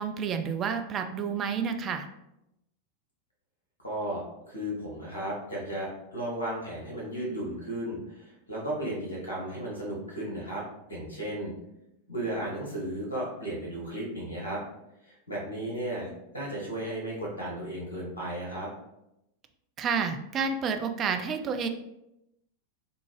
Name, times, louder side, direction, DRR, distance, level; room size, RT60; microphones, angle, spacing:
voice 1, 0.0-2.1 19.8-21.7, right 6 dB, 30° right, 6 dB, 0.3 m, -30 dB
voice 2, 3.8-10.6 10.9-11.5 12.1-14.6 15.0-16.1 16.3-18.7, right 1 dB, 75° left, -4 dB, 1.4 m, -34 dB
3.5 x 2.5 x 3.0 m, 0.86 s
figure-of-eight pair, 90°, 0 cm